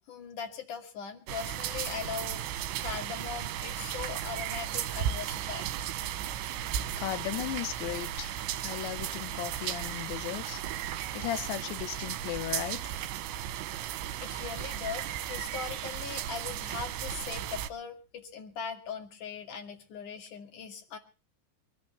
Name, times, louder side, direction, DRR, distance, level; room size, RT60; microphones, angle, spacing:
voice 1, 0.1-5.7 14.2-21.0, left 6 dB, 50° left, 3.5 m, -40 dB
sound 1, 1.3-17.7, right 11 dB, 75° right, 3.1 m, -35 dB
voice 2, 7.0-8.4 8.6-10.6 11.1-12.9, left 13 dB, 75° left, 3.2 m, -36 dB
23.5 x 14.5 x 3.3 m
omnidirectional pair, 5.4 m